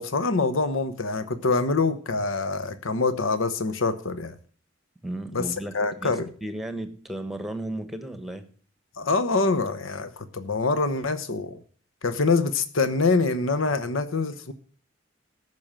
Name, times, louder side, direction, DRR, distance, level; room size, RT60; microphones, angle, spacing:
voice 1, 0.0-4.3 5.3-5.4 5.7-6.3 9.0-11.6 12.0-14.5, left 3 dB, 80° left, 12 dB, 1.0 m, -25 dB
voice 2, 5.0-8.4, right 1 dB, ahead, 10 dB, 1.2 m, -34 dB
14.0 x 6.1 x 7.4 m, 0.43 s
head